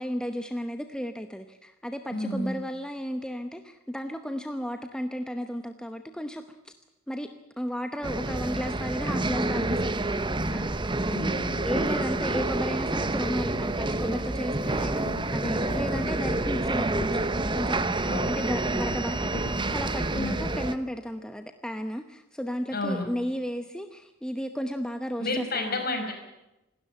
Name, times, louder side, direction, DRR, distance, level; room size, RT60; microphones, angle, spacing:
voice 1, 0.0-6.7 7.1-7.3 7.6-11.1 11.6-17.2 17.5-25.8, equal, 5° left, 7 dB, 0.9 m, -34 dB
voice 2, 2.1-2.6 11.1-11.8 18.1-18.4 20.1-20.5 22.7-23.1 25.2-26.1, left 2 dB, 45° left, 4 dB, 5.3 m, -31 dB
sound 1, 8.0-20.8, right 2 dB, 20° right, 0.9 m, -28 dB
sound 2, 13.0-20.0, left 1 dB, 65° left, 2.4 m, -42 dB
27.5 x 12.5 x 9.1 m, 0.95 s
head